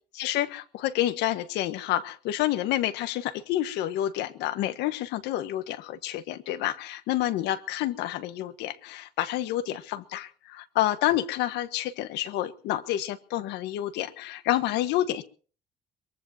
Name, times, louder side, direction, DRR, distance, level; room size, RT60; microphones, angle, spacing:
voice 1, 0.2-15.2, left 13 dB, 90° left, 12 dB, 1.4 m, -29 dB
23.5 x 22.0 x 2.8 m, 0.41 s
cardioid pair, 110°, 17 cm